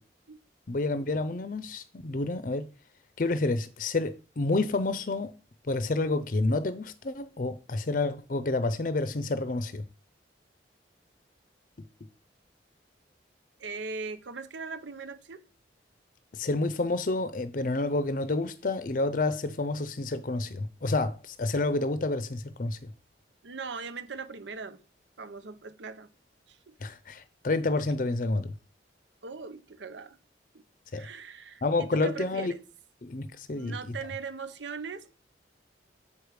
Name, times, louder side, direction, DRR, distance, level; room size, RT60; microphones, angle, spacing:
voice 1, 0.7-2.6 3.2-5.3 5.7-9.8 16.3-22.8 26.8-28.5 30.9-31.1 31.6-32.5 33.0-33.8, left 2 dB, 45° left, 0.6 m, -29 dB
voice 2, 13.6-15.4 23.4-24.8 25.2-26.1 26.5-26.7 29.2-30.2 30.9-32.6 33.5-35.1, right 4 dB, 80° right, 0.8 m, -39 dB
7.1 x 5.1 x 4.7 m
head